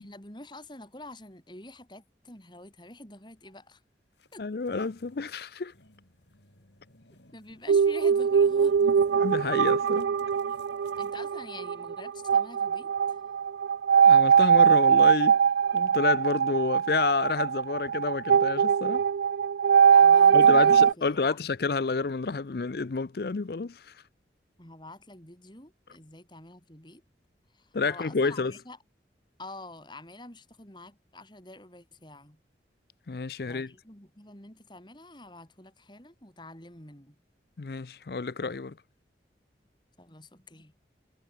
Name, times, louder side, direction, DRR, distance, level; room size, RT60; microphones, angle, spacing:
voice 1, 0.0-3.8 4.3-4.4 7.3-8.7 10.5-10.6 11.0-13.2 19.9-21.4 24.6-27.0 27.5-28.8 29.4-32.4 33.5-37.2 40.0-40.7, left 2 dB, 25° left, 5.3 m, -47 dB
sound 1, 3.4-3.6 4.1-11.5, left 3 dB, 80° left, 5.1 m, -53 dB
voice 2, 4.4-5.7 7.7-7.8 9.2-10.1 14.0-15.4 15.7-19.0 20.3-23.9 27.7-28.5 33.1-33.7 37.6-38.8, left 4 dB, 60° left, 0.5 m, -29 dB
sound 2, 7.7-20.9, right 7 dB, 85° right, 0.4 m, -21 dB
head